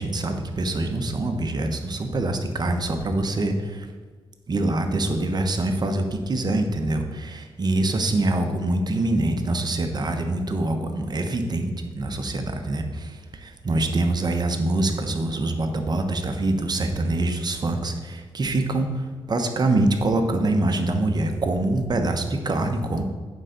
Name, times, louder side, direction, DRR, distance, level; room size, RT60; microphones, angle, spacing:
voice 1, 0.0-3.9 4.5-23.0, right 2 dB, 45° right, 5 dB, 1.1 m, -25 dB
9.0 x 3.8 x 6.9 m, 1.4 s
cardioid pair, 65°, 10 cm